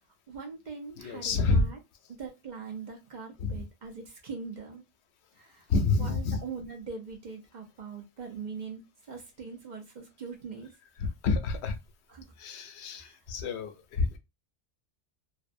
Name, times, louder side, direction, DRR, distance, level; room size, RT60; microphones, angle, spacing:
voice 1, 0.3-1.8 2.1-4.8 5.3-5.7 6.0-8.8 9.1-10.7 12.1-12.3 13.0-13.2, right 5 dB, 50° right, 0.7 m, -42 dB
voice 2, 1.0-1.7 3.4-3.6 5.7-6.4 11.0-11.8 12.4-14.2, left 3 dB, 85° left, 0.8 m, -28 dB
2.5 x 2.0 x 2.5 m
omnidirectional pair, 1.1 m